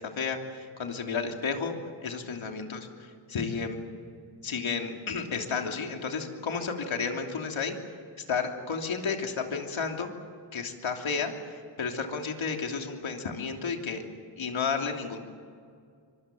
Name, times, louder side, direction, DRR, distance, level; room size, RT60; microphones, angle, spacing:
voice 1, 0.2-1.7 2.0-3.8 4.4-7.7 8.3-10.1 10.5-14.0 14.4-15.2, left 5 dB, 75° left, 3 dB, 3.2 m, -32 dB
24.5 x 24.0 x 7.6 m, 2.2 s
cardioid pair, 85°, 49 cm